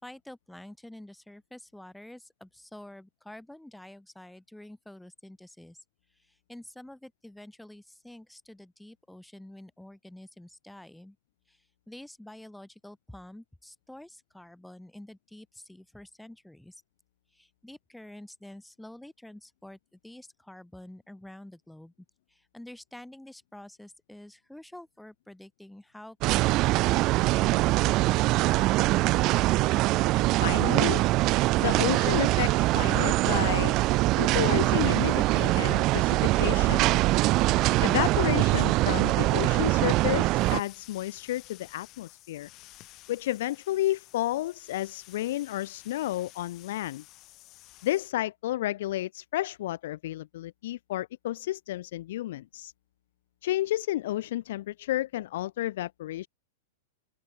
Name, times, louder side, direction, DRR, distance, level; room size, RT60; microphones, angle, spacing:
voice 1, 0.0-5.8 6.1-11.2 11.5-16.8 17.3-21.9 22.3-28.5 29.6-29.8, left 1 dB, 5° left, 5.7 m, -48 dB
sound 1, 26.2-40.6, right 19 dB, 40° right, 0.6 m, -23 dB
voice 2, 30.4-31.0 31.6-33.7 34.2-36.9 37.8-42.5 43.1-47.0 47.8-52.7 53.4-56.3, left 14 dB, 65° left, 0.4 m, -31 dB
sound 2, 40.3-48.1, left 18 dB, 40° left, 2.4 m, -52 dB
open air
hypercardioid pair, 105°, 0 cm